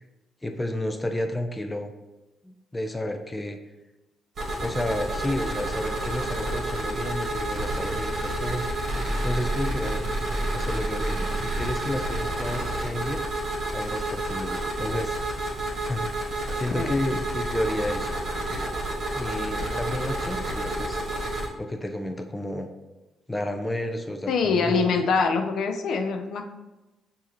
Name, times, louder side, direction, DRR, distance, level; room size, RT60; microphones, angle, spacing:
voice 1, 0.4-1.9 2.4-3.6 4.6-10.1 10.5-13.2 13.7-15.2 15.9-18.1 19.1-21.0 21.6-22.7 23.3-24.9, left 1 dB, 15° left, 5 dB, 0.5 m, -31 dB
sound 1, 4.4-21.5, right 1 dB, 55° right, 1.5 m, -29 dB
voice 2, 24.3-26.5, left 4 dB, 70° left, 4 dB, 0.5 m, -24 dB
6.2 x 2.8 x 3.0 m, 1.1 s
cardioid pair, 90°, 0 cm